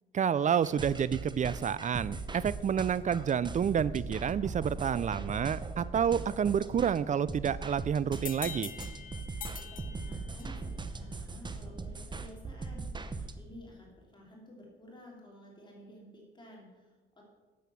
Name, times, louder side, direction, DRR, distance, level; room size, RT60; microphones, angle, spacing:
voice 1, 0.1-8.7, right 8 dB, 40° right, 19 dB, 0.4 m, -29 dB
sound 1, 0.6-13.3, right 3 dB, 25° right, 0.8 m, -40 dB
sound 2, 8.1-10.7, left 7 dB, 45° left, 0.9 m, -44 dB
voice 2, 9.6-17.3, equal, 25° left, -2 dB, 3.2 m, -52 dB
9.3 x 7.8 x 6.9 m, 1.3 s
cardioid pair, 90°, 20 cm